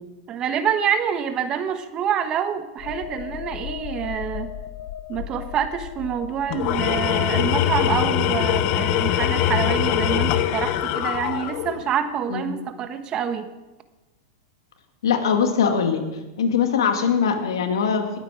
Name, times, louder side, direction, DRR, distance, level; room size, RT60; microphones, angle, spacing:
voice 1, 0.3-4.5 5.1-13.5, right 8 dB, 35° right, 10 dB, 1.1 m, -26 dB
sound 1, 2.8-10.2 10.6-10.8, left 11 dB, 65° left, 1.3 m, -38 dB
Tools, 6.5-11.9, left 11 dB, 50° left, 0.9 m, -22 dB
voice 2, 15.0-16.0 16.4-18.2, left 6 dB, 80° left, 5 dB, 2.0 m, -21 dB
20.0 x 8.7 x 5.0 m, 1.1 s
hypercardioid pair, 120°, 2 cm